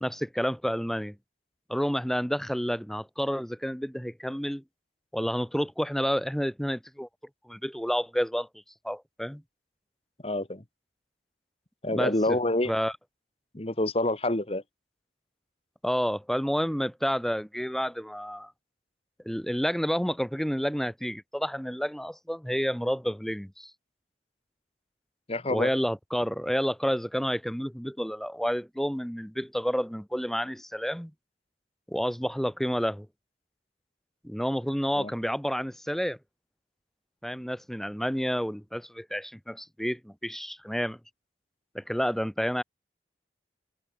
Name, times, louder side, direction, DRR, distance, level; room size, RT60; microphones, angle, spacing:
voice 1, 0.0-1.2 1.7-4.6 5.1-7.1 7.5-8.5 8.8-9.4 11.9-12.4 12.7-12.9 15.8-18.5 19.3-23.7 25.5-31.1 31.9-33.1 34.2-36.2 37.2-41.0 41.7-42.6, equal, ahead, 2.1 m, -30 dB
voice 2, 10.2-10.6 11.8-12.7 13.5-14.6 25.3-25.7 34.9-35.1, left 1 dB, 35° left, 1.7 m, -27 dB
head